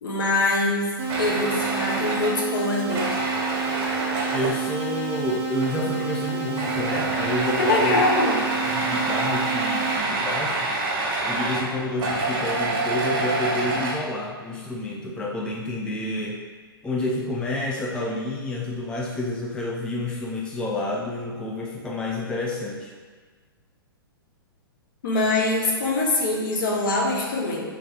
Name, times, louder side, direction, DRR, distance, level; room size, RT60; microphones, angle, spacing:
voice 1, 0.0-3.2 7.6-8.4 25.0-27.6, left 2 dB, 55° left, -3 dB, 1.1 m, -23 dB
sound 1, 1.0-10.0, right 5 dB, 15° right, 1.0 m, -30 dB
sound 2, 1.1-4.6 5.6-6.0 6.3-13.9, right 2 dB, 35° right, 1.3 m, -27 dB
voice 2, 4.3-8.0 8.6-10.7 11.3-16.4 16.8-22.9, left 1 dB, 5° left, -3 dB, 0.4 m, -29 dB
3.5 x 3.2 x 4.6 m, 1.5 s
figure-of-eight pair, 110°, 13 cm